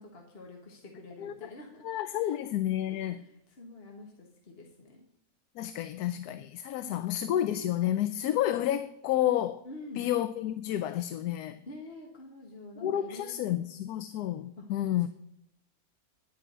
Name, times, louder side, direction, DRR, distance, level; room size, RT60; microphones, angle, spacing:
voice 1, 0.0-2.4 2.9-5.1 9.6-10.1 11.6-13.7 14.6-14.7 15.0-15.1, left 2 dB, 40° left, 1.7 m, -48 dB
voice 2, 1.2-1.5 1.8-3.2 5.6-9.6 10.0-11.6 12.8-15.1, left 12 dB, 85° left, 1.1 m, -30 dB
11.0 x 5.0 x 7.8 m
omnidirectional pair, 1.6 m